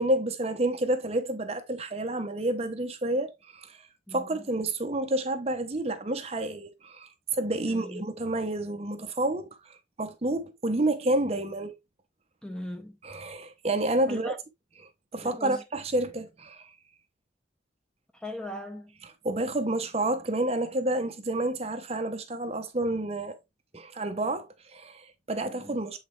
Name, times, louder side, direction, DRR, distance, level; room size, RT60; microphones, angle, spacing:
voice 1, 0.0-3.8 4.1-11.7 13.0-14.3 15.1-16.7 19.2-23.4 23.7-26.0, right 1 dB, 35° right, 0.8 m, -29 dB
voice 2, 4.1-4.5 7.7-8.0 12.4-13.0 14.1-14.4 15.2-15.6 18.1-19.0 25.4-25.8, left 1 dB, 5° left, 1.0 m, -39 dB
8.4 x 4.2 x 3.2 m
head